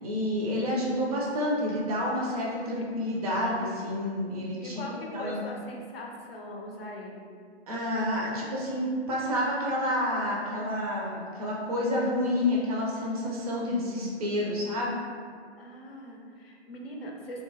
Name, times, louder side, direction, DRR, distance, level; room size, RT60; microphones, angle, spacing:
voice 1, 0.0-4.9 5.1-5.4 7.7-15.0, left 1 dB, 35° right, -3 dB, 0.4 m, -29 dB
voice 2, 4.6-7.3 15.6-17.4, left 1 dB, 60° left, 0 dB, 0.6 m, -41 dB
2.7 x 2.2 x 2.7 m, 2.1 s
figure-of-eight pair, 125°, 34 cm